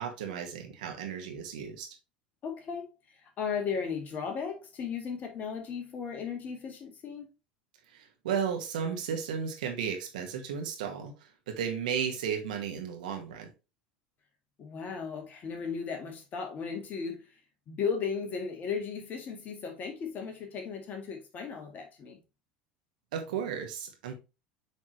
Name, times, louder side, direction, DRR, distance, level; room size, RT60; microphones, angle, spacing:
voice 1, 0.0-1.9 7.9-13.5 23.1-24.1, right 7 dB, 65° right, 1.8 m, -34 dB
voice 2, 2.4-2.9 3.2-7.3 14.6-17.3 17.7-22.2, left 6 dB, 40° left, 1.9 m, -36 dB
8.0 x 4.2 x 3.3 m
figure-of-eight pair, 75°, 5 cm